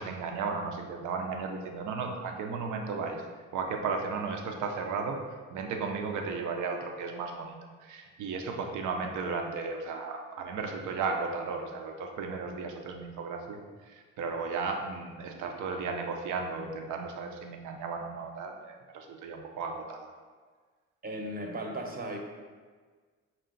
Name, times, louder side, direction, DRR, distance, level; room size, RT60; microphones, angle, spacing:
voice 1, 0.0-3.2 3.5-20.1, right 4 dB, 75° right, 3 dB, 0.6 m, -35 dB
voice 2, 21.0-22.2, right 1 dB, 30° right, 1 dB, 0.8 m, -36 dB
5.6 x 2.4 x 3.8 m, 1.5 s
cardioid pair, 90°, 30 cm